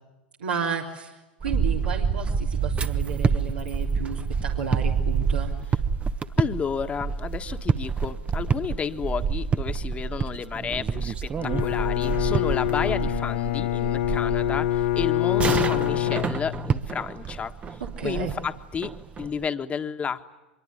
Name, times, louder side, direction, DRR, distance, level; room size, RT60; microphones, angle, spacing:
voice 1, 0.4-5.5 17.8-18.3, right 6 dB, 80° right, -2 dB, 3.4 m, -32 dB
sound 1, 1.4-19.4, right 5 dB, 20° right, 1.1 m, -28 dB
voice 2, 6.4-18.9 19.2-20.2, left 6 dB, 25° left, 8 dB, 1.6 m, -32 dB
Bowed string instrument, 11.4-16.8, left 14 dB, 60° left, 0.9 m, -25 dB
24.5 x 22.5 x 9.8 m, 1.0 s
hypercardioid pair, 90°, 5 cm